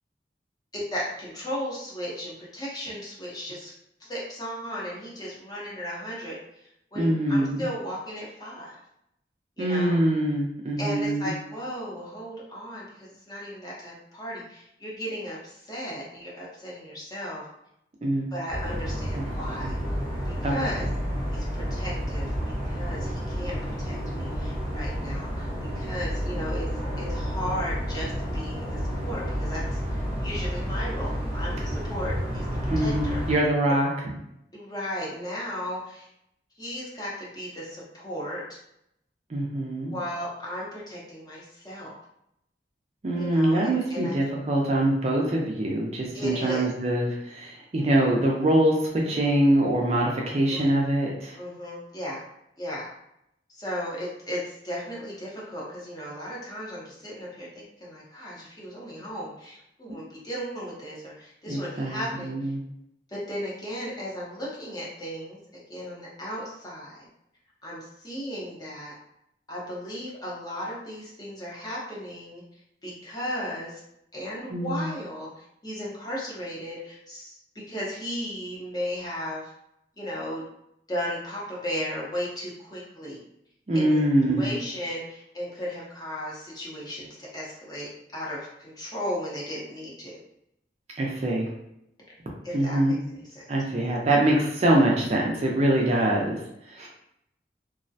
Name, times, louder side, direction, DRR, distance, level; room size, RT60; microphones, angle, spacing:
voice 1, 0.7-3.7 4.0-8.8 9.6-10.0 10.8-17.5 18.3-19.8 20.2-20.9 21.3-22.3 22.6-25.5 25.7-26.7 27.0-33.2 34.5-36.1 36.6-38.4 39.9-41.9 43.2-44.1 46.1-46.7 50.5-50.7 51.4-52.2 52.6-52.9 53.5-62.5 63.1-65.4 65.7-67.0 67.6-68.9 69.5-72.4 72.8-73.8 74.1-77.4 77.7-79.5 80.0-80.4 80.9-83.2 83.7-84.0 84.3-90.1 92.4-92.9 93.2-93.5, equal, 20° left, -5 dB, 0.6 m, -35 dB
voice 2, 7.0-7.6 9.6-11.3 18.0-18.3 19.2-19.7 20.4-20.8 32.7-33.9 39.3-39.9 43.0-51.4 61.5-62.6 74.5-74.9 83.7-84.5 91.0-91.5 92.5-93.0 93.5-96.4 96.7-96.9, right 1 dB, 35° right, -2 dB, 0.4 m, -24 dB
sound 1, 18.5-33.4, equal, 10° right, 0.8 m, -30 dB
2.3 x 2.1 x 2.6 m, 0.78 s
head